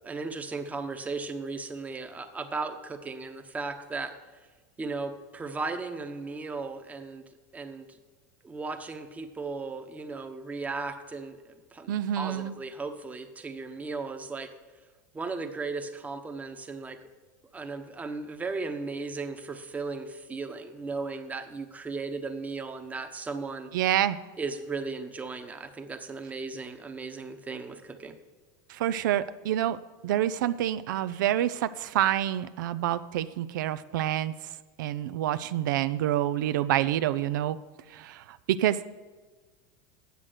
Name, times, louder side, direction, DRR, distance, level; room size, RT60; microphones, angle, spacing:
voice 1, 0.0-4.1 4.8-7.2 7.5-8.0 8.4-14.5 15.1-17.0 17.5-23.7 24.4-28.2, right 4 dB, 15° right, 6 dB, 0.9 m, -36 dB
voice 2, 11.9-12.5 23.7-24.2 28.7-29.8 30.0-34.3 34.8-37.6 37.9-38.8, right 12 dB, 85° right, 13 dB, 0.4 m, -27 dB
8.3 x 7.4 x 7.8 m, 1.3 s
supercardioid pair, 125°, 10 cm